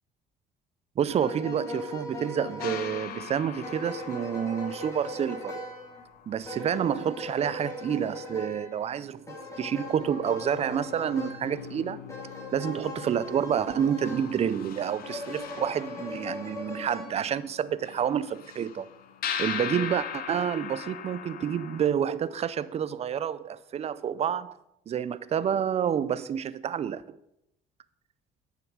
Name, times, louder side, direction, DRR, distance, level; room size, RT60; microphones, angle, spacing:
voice 1, 1.0-5.6 6.3-12.0 12.5-18.9 19.4-24.6 24.9-27.2, right 8 dB, 40° right, 0.4 m, -29 dB
sound 1, 1.1-14.5 15.0-17.1, left 2 dB, 15° left, 2.7 m, -40 dB
sound 2, 2.6-7.5 9.0-9.1 9.4-21.9, left 8 dB, 60° left, 0.8 m, -41 dB
9.3 x 6.8 x 4.7 m
cardioid pair, 110°, 17 cm